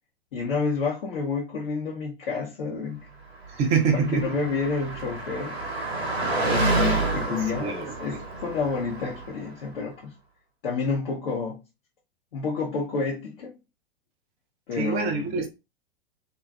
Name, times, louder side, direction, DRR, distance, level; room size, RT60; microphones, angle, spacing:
voice 1, 0.3-3.1 4.1-5.6 6.4-10.1 10.6-11.6 12.3-13.6 14.7-15.4, left 4 dB, 55° left, 0.8 m, -29 dB
voice 2, 3.5-4.4 6.2-6.4 7.3-8.2 14.8-15.5, right 5 dB, 20° right, 0.4 m, -26 dB
Car passing by, 3.5-9.5, right 2 dB, 75° right, 0.8 m, -29 dB
2.5 x 2.3 x 2.3 m
figure-of-eight pair, 100°, 32 cm